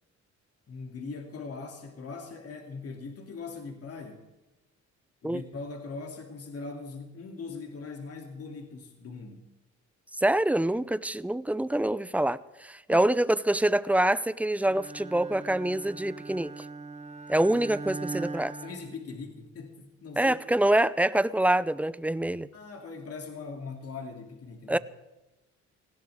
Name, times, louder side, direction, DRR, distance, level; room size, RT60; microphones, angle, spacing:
voice 1, 0.7-4.3 5.2-9.5 12.1-12.2 12.9-13.1 18.6-20.4 22.5-24.8, left 4 dB, 50° left, 3 dB, 2.6 m, -41 dB
voice 2, 10.2-16.5 17.3-18.5 20.2-22.5 24.7-24.8, right 1 dB, 5° right, 17 dB, 0.5 m, -25 dB
Bowed string instrument, 14.6-19.6, right 3 dB, 20° right, 0.9 m, -40 dB
19.5 x 16.0 x 3.5 m, 1.1 s
cardioid pair, 90°, 30 cm